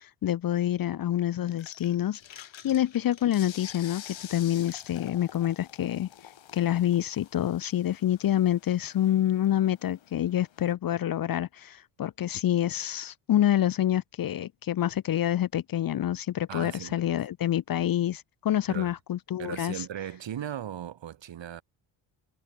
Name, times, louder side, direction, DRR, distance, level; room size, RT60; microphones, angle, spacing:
voice 1, 0.0-6.1 6.5-19.7, left 12 dB, 50° left, 0.6 m, -27 dB
sound 1, 1.5-10.7, left 10 dB, 70° left, 7.3 m, -48 dB
voice 2, 16.5-17.0 18.7-19.0 19.4-21.6, right 10 dB, 65° right, 4.4 m, -38 dB
wide cardioid pair, 175°, 47 cm